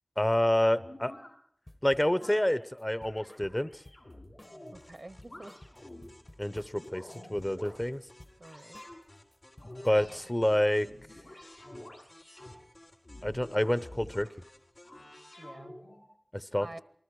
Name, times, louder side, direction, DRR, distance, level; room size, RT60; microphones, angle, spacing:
voice 1, 0.2-1.1 1.8-3.8 6.4-8.0 9.8-10.9 13.2-14.3 16.3-16.7, left 1 dB, 25° left, 15 dB, 0.8 m, -28 dB
sound 1, 0.6-1.3 2.0-2.5 3.0-4.8 5.2-6.1 6.6-7.8 8.4-9.0 9.6-10.2 10.7-12.6 13.0-14.3 14.8-16.1, left 1 dB, 90° left, 7.4 m, -49 dB
sound 2, 1.7-2.4 2.8-4.1 4.4-4.7 4.9-6.9 7.1-8.4 8.7-9.0 9.3-10.3, left 1 dB, 50° left, 1.6 m, -54 dB
sound 3, 4.4-15.0, left 1 dB, 70° left, 3.2 m, -58 dB
voice 2, 4.7-5.6 8.4-8.8 10.1-10.5 15.4-15.7 16.5-16.8, right 2 dB, 70° right, 15 dB, 0.7 m, -48 dB
28.0 x 20.0 x 4.7 m, 0.63 s
wide cardioid pair, 45°, 0 cm